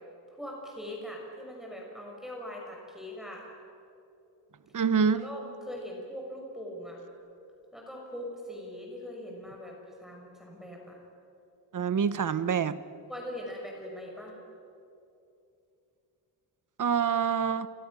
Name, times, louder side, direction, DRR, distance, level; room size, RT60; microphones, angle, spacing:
voice 1, 0.3-3.5 5.1-7.0 7.7-11.0 13.1-14.4, equal, ahead, -2 dB, 5.2 m, -41 dB
voice 2, 4.7-5.2 11.7-12.8 16.8-17.7, right 6 dB, 45° right, 14 dB, 1.0 m, -26 dB
29.0 x 24.5 x 6.2 m, 2.7 s
wide cardioid pair, 155°, 43 cm